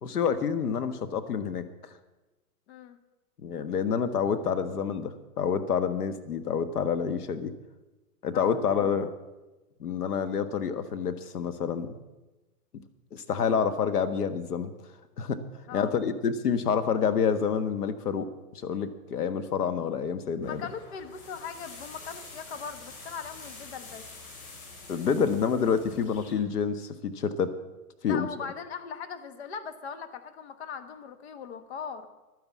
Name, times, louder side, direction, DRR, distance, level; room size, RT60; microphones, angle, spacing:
voice 1, 0.0-1.9 3.4-7.5 8.2-9.1 9.8-12.0 12.7-12.8 13.1-14.7 15.2-15.4 15.7-18.3 18.6-20.6 24.9-27.5 28.0-28.3, left 6 dB, 85° left, 11 dB, 1.5 m, -28 dB
voice 2, 2.7-3.0 8.3-8.6 13.3-13.6 15.7-15.9 20.4-24.1 28.0-32.1, left 6 dB, 45° left, 9 dB, 1.2 m, -40 dB
sound 1, 20.4-26.3, left 3 dB, 70° left, 4.7 m, -47 dB
12.0 x 9.6 x 7.4 m, 1.1 s
hypercardioid pair, 160°, 45 cm